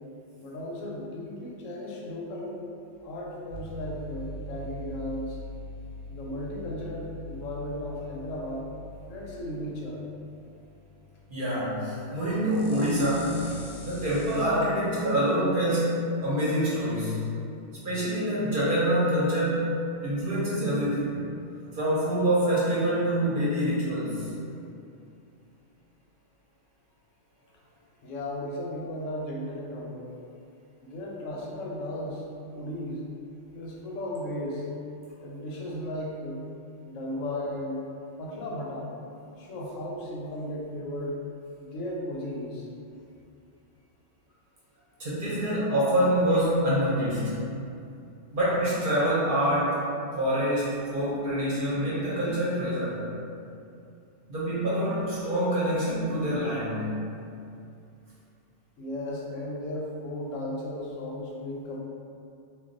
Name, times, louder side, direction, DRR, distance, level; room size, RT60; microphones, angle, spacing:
voice 1, 0.4-2.6 3.0-5.4 6.1-8.7 9.1-10.0 28.0-30.1 30.8-33.0 33.5-34.7 35.2-36.4 36.8-37.8 38.2-38.9 39.4-41.2 41.6-42.7 58.8-61.8, left 1 dB, 85° left, -3 dB, 1.0 m, -35 dB
sound 1, 3.5-14.4, left 1 dB, 60° left, 0.4 m, -43 dB
voice 2, 11.3-13.5 13.8-17.2 17.8-19.8 20.0-21.2 21.7-24.3 45.0-47.4 48.3-49.8 50.2-53.0 54.3-56.9, equal, 50° right, -9 dB, 0.8 m, -26 dB
2.3 x 2.2 x 3.7 m, 2.5 s
omnidirectional pair, 1.3 m